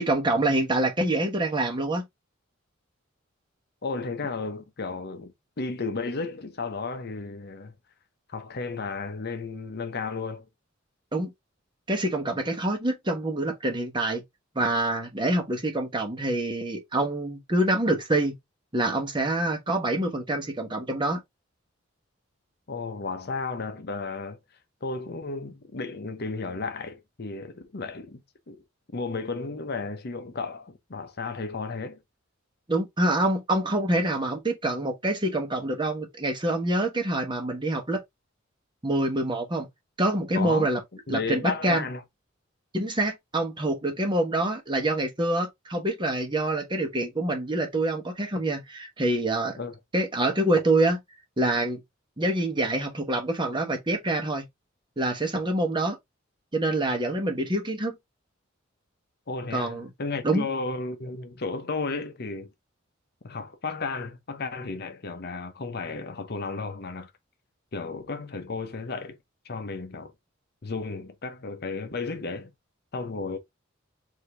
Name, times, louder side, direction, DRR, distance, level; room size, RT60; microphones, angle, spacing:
voice 1, 0.0-2.1 11.1-11.3 11.9-14.2 14.5-18.4 18.7-21.2 32.7-38.0 38.8-39.7 40.0-40.8 41.1-41.9 42.7-49.6 49.9-51.0 51.4-51.8 52.2-54.5 55.0-56.0 56.5-58.0 59.5-59.9 60.2-60.5, right 1 dB, 25° right, 1.0 m, -26 dB
voice 2, 3.8-7.7 8.3-10.4 22.7-24.4 24.8-28.2 28.5-28.6 28.9-32.0 40.4-40.7 41.1-42.0 49.6-49.8 59.3-62.5 63.2-67.1 67.7-69.2 69.4-70.1 70.6-72.5 72.9-73.4, left 4 dB, 50° left, 0.7 m, -33 dB
4.9 x 2.7 x 3.3 m
head